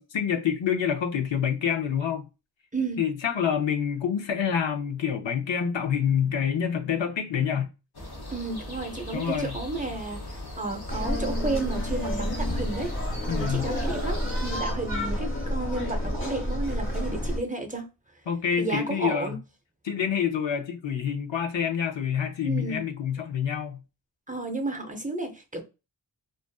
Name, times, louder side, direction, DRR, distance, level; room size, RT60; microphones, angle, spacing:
voice 1, 0.0-2.3 3.0-7.7 9.1-9.5 13.3-13.7 18.3-19.4 19.8-23.8, left 8 dB, 85° left, 0.6 m, -27 dB
sound 1, 7.9-14.6, left 1 dB, 60° left, 1.0 m, -39 dB
voice 2, 8.3-12.9 13.3-17.9 18.6-19.4 22.5-22.8 24.3-25.6, right 3 dB, 20° right, 0.5 m, -32 dB
sound 2, 10.9-17.4, equal, 30° left, 0.9 m, -29 dB
2.5 x 2.4 x 2.3 m
wide cardioid pair, 70°, 44 cm